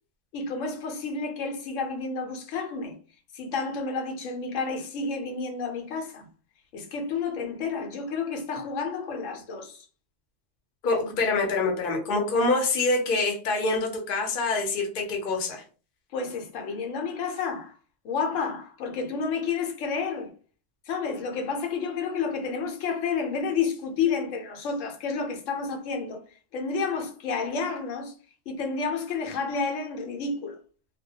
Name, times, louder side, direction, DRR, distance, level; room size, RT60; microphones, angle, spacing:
voice 1, 0.3-3.0 3.3-6.3 6.7-9.8 16.1-17.8 18.0-20.3 20.9-28.1 28.5-30.6, left 5 dB, 85° left, 1.0 m, -30 dB
voice 2, 10.8-15.6, left 3 dB, 55° left, 0.8 m, -25 dB
2.2 x 2.1 x 2.7 m
omnidirectional pair, 1.3 m